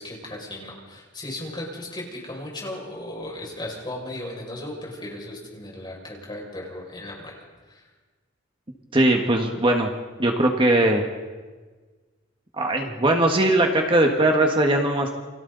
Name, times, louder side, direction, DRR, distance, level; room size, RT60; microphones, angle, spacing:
voice 1, 0.0-7.4 7.6-7.9, left 1 dB, 25° left, -2 dB, 6.3 m, -36 dB
voice 2, 8.9-9.9 10.2-11.0 12.6-15.2, right 1 dB, 25° right, 2 dB, 1.7 m, -20 dB
29.5 x 24.5 x 4.1 m, 1.4 s
head